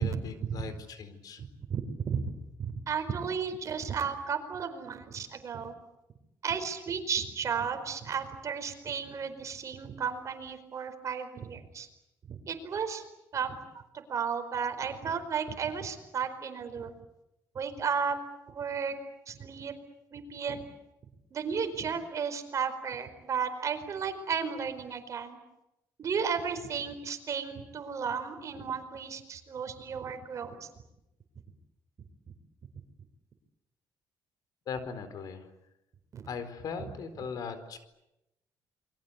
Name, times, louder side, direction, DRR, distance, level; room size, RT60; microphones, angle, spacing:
voice 1, 0.0-1.4 34.7-35.5 36.3-37.8, left 5 dB, 65° left, 11 dB, 4.4 m, -39 dB
voice 2, 1.4-2.2 2.6-5.7 6.4-11.9 12.3-13.0 13.3-13.6 13.9-16.9 17.5-18.2 18.5-18.9 19.3-19.7 20.1-20.6 21.3-25.4 26.0-30.7 36.1-36.2 36.8-36.9, right 6 dB, 45° right, 7 dB, 4.7 m, -34 dB
29.0 x 23.0 x 8.3 m, 0.89 s
cardioid pair, 115°, 7 cm